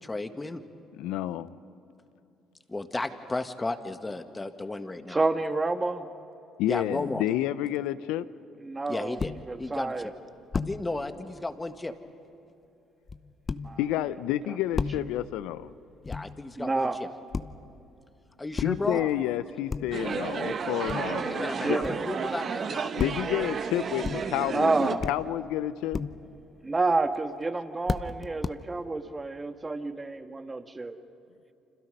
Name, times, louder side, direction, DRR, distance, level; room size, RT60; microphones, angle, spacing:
voice 1, 0.0-0.6 2.7-5.2 6.7-7.2 8.9-9.3 9.6-9.9 10.6-11.9 16.0-17.1 18.4-19.0 21.3-22.9, left 2 dB, 20° left, 8 dB, 1.6 m, -34 dB
voice 2, 1.0-1.6 6.6-8.3 13.8-15.7 18.6-21.8 23.0-26.0, left 13 dB, 75° left, 16 dB, 0.6 m, -30 dB
voice 3, 5.1-6.1 8.6-10.1 13.6-13.8 16.6-17.0 18.9-19.1 21.3-22.0 24.4-25.1 26.6-31.0, right 3 dB, 25° right, 8 dB, 1.5 m, -29 dB
sound 1, 9.2-9.5 10.5-10.9 13.1-14.0 14.7-15.3 16.0-16.5 17.3-17.7 18.6-19.0 19.6-20.1 20.9-21.3 21.8-22.2 23.0-23.4 24.0-24.5 25.0-25.5 25.9-26.4 27.0-27.2 27.9-28.5, left 4 dB, 35° left, 0.8 m, -34 dB
sound 2, 19.9-25.0, right 6 dB, 50° right, 1.2 m, -32 dB
29.0 x 26.5 x 5.4 m, 2.8 s
hypercardioid pair, 60°, 0 cm